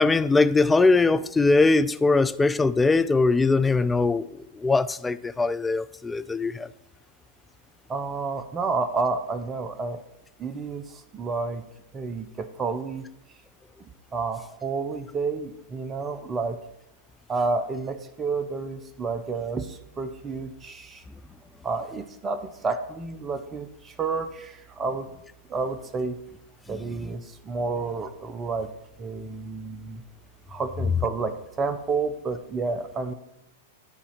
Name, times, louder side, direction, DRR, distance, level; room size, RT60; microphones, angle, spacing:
voice 1, 0.0-4.2 4.6-6.7, left 3 dB, 10° left, 0.3 m, -21 dB
voice 2, 7.9-10.0 10.4-10.8 11.1-11.6 11.9-13.0 14.1-16.6 17.3-21.0 21.6-25.1 25.5-26.2 26.7-28.7 29.0-30.0 30.5-33.1, right 4 dB, 20° right, 0.7 m, -30 dB
10.5 x 4.1 x 5.6 m
hypercardioid pair, 100°, 0 cm